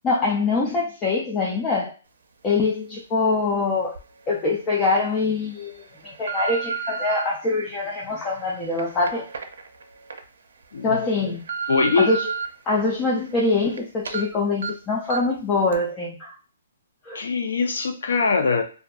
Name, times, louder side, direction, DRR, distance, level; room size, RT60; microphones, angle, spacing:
voice 1, 0.0-1.9 2.4-4.0 4.3-9.3 10.8-11.4 12.0-12.3 12.7-16.3 17.0-17.2, left 3 dB, 15° left, -3 dB, 0.3 m, -24 dB
sound 1, 3.9-4.0 4.7-5.0 5.6-7.2 7.9-10.2 10.6-10.7 11.2-12.5 12.9-13.8 14.0-14.2 14.6-14.7 15.1-15.4 15.7-15.8, right 5 dB, 80° right, 0.5 m, -32 dB
voice 2, 11.7-12.1 17.1-18.6, left 4 dB, 75° left, 5 dB, 0.5 m, -22 dB
2.6 x 2.3 x 2.2 m, 0.37 s
hypercardioid pair, 175°, 0 cm